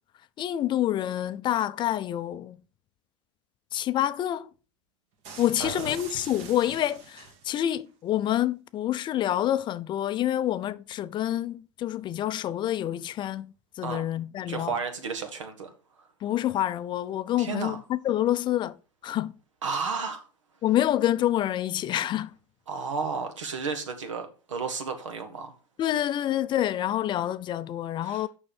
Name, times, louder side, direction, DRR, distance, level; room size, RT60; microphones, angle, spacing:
voice 1, 0.4-2.6 3.7-4.5 5.4-14.7 16.2-18.8 19.0-19.3 20.6-22.3 25.8-28.3, left 12 dB, 30° left, 0.5 m, -27 dB
sound 1, 5.2-7.7, right 5 dB, 50° right, 1.7 m, -43 dB
voice 2, 5.6-6.0 13.8-14.1 14.5-15.7 16.0-16.1 17.4-17.8 19.6-20.2 22.7-25.6 28.0-28.3, right 5 dB, 80° right, 1.5 m, -33 dB
6.8 x 5.5 x 5.0 m
hypercardioid pair, 105°, 16 cm